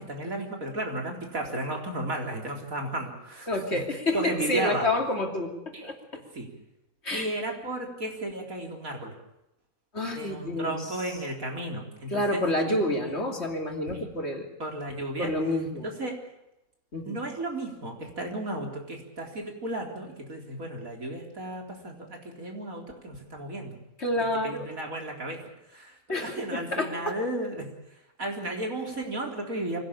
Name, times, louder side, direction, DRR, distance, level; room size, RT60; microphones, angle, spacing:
voice 1, 0.0-4.9 5.7-5.9 6.1-6.5 7.1-9.1 10.1-12.4 12.9-13.4 13.9-14.1 14.6-15.3 15.8-16.2 17.0-23.7 24.4-25.4 25.7-27.7 28.2-29.9, right 1 dB, 85° right, 1 dB, 4.4 m, -34 dB
voice 2, 3.5-6.0 7.0-7.3 9.9-10.9 12.1-14.5 15.2-15.9 16.9-17.2 24.0-24.6 26.1-27.1, left 1 dB, 50° left, 2 dB, 3.2 m, -29 dB
24.5 x 17.5 x 8.7 m, 0.89 s
omnidirectional pair, 1.4 m